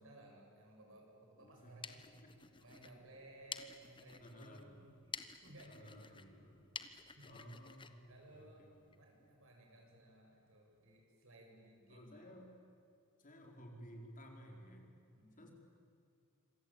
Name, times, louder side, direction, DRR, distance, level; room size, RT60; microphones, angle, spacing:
voice 1, 0.0-2.0 2.6-5.0 5.4-6.4 7.2-7.7 8.1-8.7 9.0-12.3 15.1-15.5, right 1 dB, 65° right, 1 dB, 7.4 m, -59 dB
voice 2, 1.4-3.0 4.2-4.9 5.7-6.7 7.2-9.5 11.9-12.5 13.2-15.0 15.4-15.5, equal, 40° left, 2 dB, 4.4 m, -56 dB
sound 1, 1.5-9.0, left 5 dB, 20° left, 1.1 m, -52 dB
27.0 x 25.0 x 8.9 m, 2.5 s
head